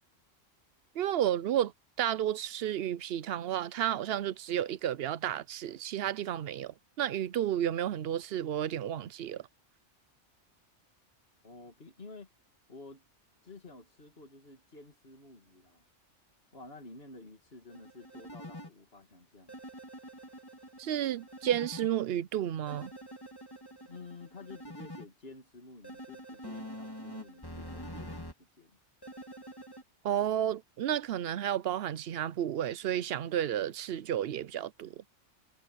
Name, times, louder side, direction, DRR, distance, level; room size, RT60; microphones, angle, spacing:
voice 1, 0.9-1.7 2.0-9.4 20.8-22.9 30.0-35.0, right 11 dB, 60° right, 0.7 m, -32 dB
voice 2, 11.4-12.3 12.7-13.0 13.4-15.8 16.5-19.6 23.8-28.8, left 3 dB, 55° left, 2.8 m, -51 dB
sound 1, 17.7-18.7 19.5-21.9 22.7-25.0 25.8-28.3 29.0-29.8, equal, 20° left, 2.5 m, -46 dB
omnidirectional pair, 1.3 m